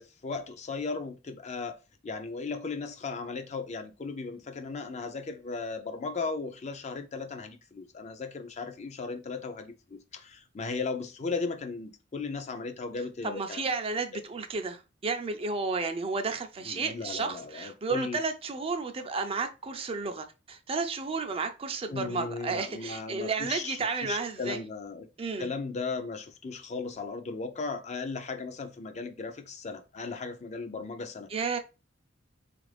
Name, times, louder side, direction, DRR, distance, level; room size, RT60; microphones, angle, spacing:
voice 1, 0.0-1.8 2.0-13.6 14.1-14.2 16.6-18.2 21.9-25.1 25.4-31.3, left 4 dB, 35° left, 0.4 m, -36 dB
voice 2, 13.2-24.6 25.2-25.5 31.3-31.6, right 4 dB, 30° right, 0.4 m, -32 dB
3.8 x 2.5 x 3.2 m
head